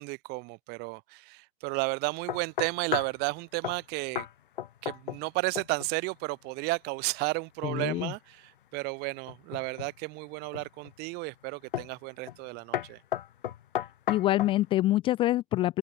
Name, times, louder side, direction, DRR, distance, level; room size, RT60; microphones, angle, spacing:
voice 1, 0.0-4.3 4.8-13.0, right 27 dB, 30° right, 5.7 m, -33 dB
sound 1, 2.3-3.2 3.6-3.8 4.2-4.3 4.6-5.3 5.6-5.9 9.3-9.9 10.5-10.9 11.7-12.0 12.3-12.5 12.7-14.6, left 11 dB, 50° left, 1.6 m, -34 dB
voice 2, 7.6-8.1 14.1-15.8, left 15 dB, 15° left, 0.7 m, -26 dB
open air
figure-of-eight pair, 120°, 32 cm